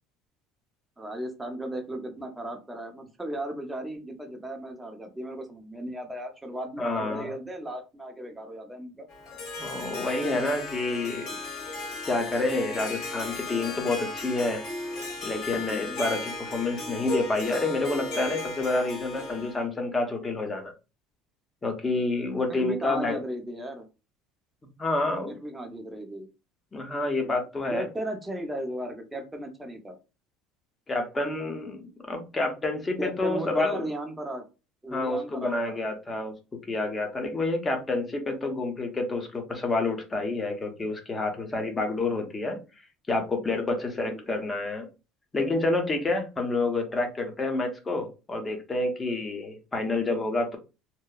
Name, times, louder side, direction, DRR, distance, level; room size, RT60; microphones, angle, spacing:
voice 1, 1.0-9.1 15.9-16.0 22.5-23.9 25.3-26.3 27.7-30.0 33.0-34.4 34.8-35.8 43.8-44.2, right 1 dB, 10° right, 4 dB, 0.7 m, -36 dB
voice 2, 6.8-7.3 9.6-11.3 12.1-14.6 15.2-20.7 21.6-23.2 24.8-25.3 26.7-27.9 30.9-33.8 34.9-36.3 36.7-42.6 43.1-44.9 45.3-50.6, left 2 dB, 20° left, 4 dB, 0.8 m, -28 dB
Harp, 9.1-19.6, left 2 dB, 55° left, 1.2 m, -36 dB
2.9 x 2.0 x 2.3 m, 0.30 s
supercardioid pair, 105°, 0 cm